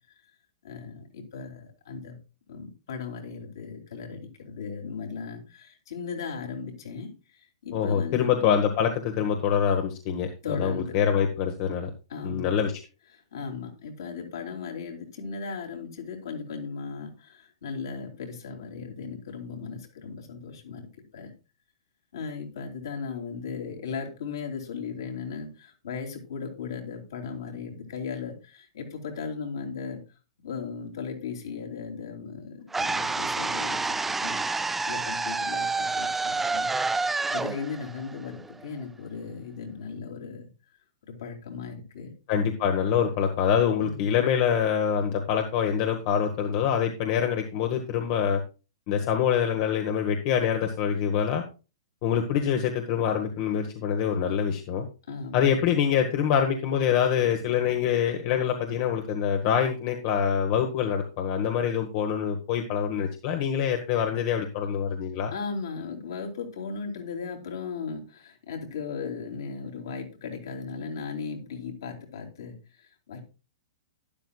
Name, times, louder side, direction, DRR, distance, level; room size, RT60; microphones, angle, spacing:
voice 1, 0.6-2.2 2.5-7.1 7.6-8.3 10.4-11.0 12.1-12.5 13.3-20.9 21.1-21.3 22.1-30.0 30.4-33.9 34.2-36.7 37.3-40.5 41.1-42.1 43.8-44.1 55.1-55.5 65.3-72.6 73.1-73.2, left 5 dB, 65° left, 2 dB, 3.1 m, -37 dB
voice 2, 7.7-11.9 12.2-12.7 42.3-48.4 48.9-51.4 52.0-54.9 55.3-65.3, left 8 dB, 45° left, 4 dB, 1.4 m, -25 dB
sound 1, 32.7-38.8, right 3 dB, 10° right, 0.4 m, -29 dB
12.5 x 10.5 x 2.4 m, 0.31 s
figure-of-eight pair, 110°, 2 cm